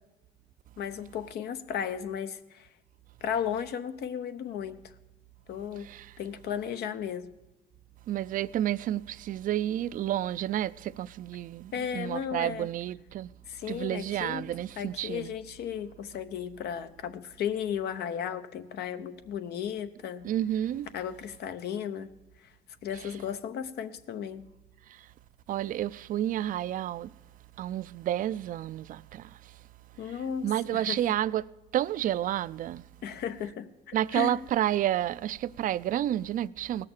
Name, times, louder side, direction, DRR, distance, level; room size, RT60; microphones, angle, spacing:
voice 1, 0.8-2.7 3.2-4.8 5.5-5.9 6.2-7.3 11.7-12.7 13.5-14.5 14.8-20.3 20.9-22.1 22.4-22.5 22.8-24.5 30.0-31.0 33.0-34.3, left 8 dB, 75° left, 0.9 m, -35 dB
voice 2, 8.1-13.3 13.7-15.3 20.2-20.9 24.9-25.0 25.5-27.1 27.6-29.3 30.4-31.5 31.7-32.8 33.9-36.9, right 12 dB, 55° right, 0.4 m, -30 dB
17.5 x 6.6 x 7.1 m
cardioid pair, 125°, 17 cm